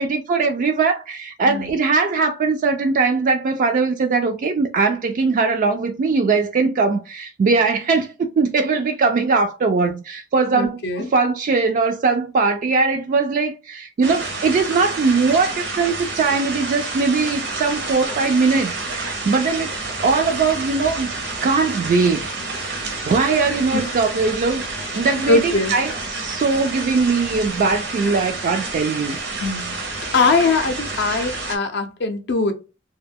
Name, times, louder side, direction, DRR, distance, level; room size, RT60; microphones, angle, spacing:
voice 1, 0.0-19.7 20.0-21.1 21.4-22.2 22.6-24.6 25.0-29.2 30.1-30.7, right 4 dB, 45° right, 0.3 m, -20 dB
voice 2, 1.4-1.7 10.5-11.1 23.7-23.9 24.1-24.4 24.8-25.7 29.4-29.8 30.1-32.5, left 3 dB, 60° left, 0.5 m, -21 dB
sound 1, 14.0-31.6, right 3 dB, 65° right, 0.7 m, -29 dB
2.2 x 2.1 x 3.3 m
head